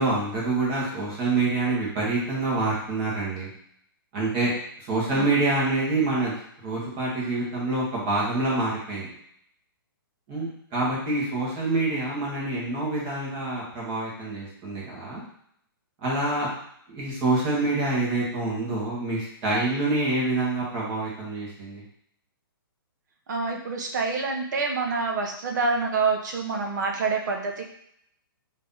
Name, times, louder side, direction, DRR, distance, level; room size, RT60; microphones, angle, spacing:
voice 1, 0.0-3.5 4.1-4.5 4.9-6.3 6.6-9.1 10.3-15.2 16.0-16.5 16.9-21.8, right 2 dB, 25° right, -5 dB, 1.4 m, -26 dB
voice 2, 23.3-27.6, right 4 dB, 50° right, 2 dB, 0.8 m, -27 dB
3.3 x 2.8 x 3.7 m, 0.71 s
hypercardioid pair, 165°, 12 cm